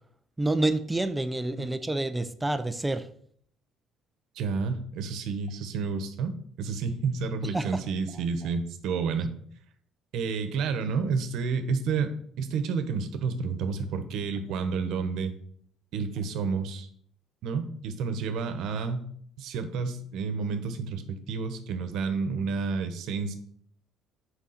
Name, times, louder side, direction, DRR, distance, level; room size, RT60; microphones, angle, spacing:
voice 1, 0.4-3.1 7.4-7.8, right 2 dB, 10° right, 11 dB, 0.5 m, -28 dB
voice 2, 4.3-9.3 10.1-15.3 15.9-16.9 17.4-19.1 19.4-23.3, right 5 dB, 70° right, 9 dB, 1.0 m, -30 dB
6.6 x 4.9 x 5.7 m, 0.62 s
cardioid pair, 125°, 0 cm